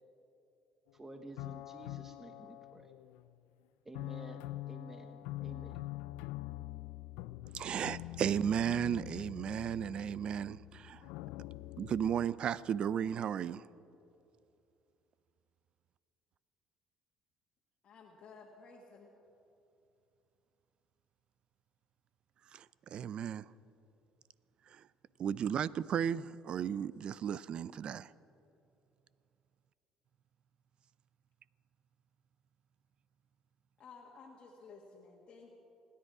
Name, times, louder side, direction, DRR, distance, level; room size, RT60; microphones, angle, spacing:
sound 1, 0.9-1.0 1.4-3.4 3.9-12.3, left 16 dB, 85° left, 0.4 m, -45 dB
voice 1, 0.9-2.9 3.8-5.8, right 2 dB, 15° right, 1.1 m, -51 dB
voice 2, 7.5-11.0 11.8-13.7 22.5-23.5 24.7-24.8 25.2-28.1, right 8 dB, 50° right, 0.5 m, -35 dB
voice 3, 17.8-19.1 33.8-35.5, left 4 dB, 50° left, 1.8 m, -54 dB
28.5 x 10.5 x 4.9 m
supercardioid pair, 90°, 2 cm